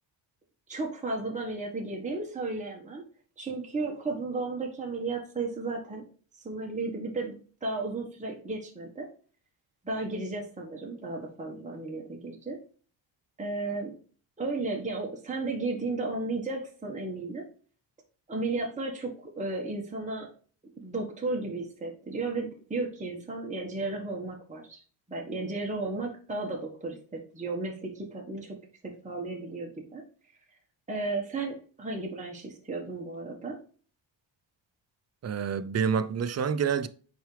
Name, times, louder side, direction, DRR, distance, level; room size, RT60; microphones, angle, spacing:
voice 1, 0.7-3.0 3.4-6.0 6.4-7.3 7.6-9.1 9.8-12.6 13.4-14.0 14.4-17.4 18.3-20.3 20.8-24.8 25.1-28.6 29.0-30.0 30.9-33.6, right 3 dB, 15° right, 1.5 m, -34 dB
voice 2, 35.2-36.9, right 7 dB, 35° right, 0.5 m, -27 dB
6.1 x 4.9 x 3.3 m
cardioid pair, 105°, 48 cm